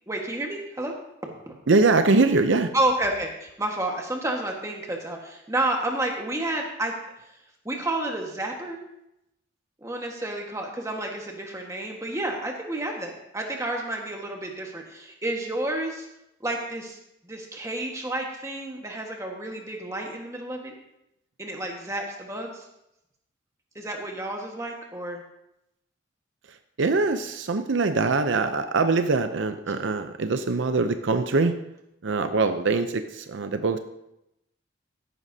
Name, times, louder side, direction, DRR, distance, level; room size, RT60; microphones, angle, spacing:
voice 1, 0.1-0.9 1.2-1.5 2.7-6.9 7.6-8.8 9.8-16.1 16.4-17.0 17.2-20.7 21.4-22.7 23.7-25.2, right 1 dB, 15° right, 1 dB, 1.5 m, -30 dB
voice 2, 1.7-2.7 26.8-31.6 32.0-33.8, right 3 dB, 70° right, 9 dB, 0.6 m, -23 dB
14.0 x 11.0 x 2.8 m, 0.85 s
head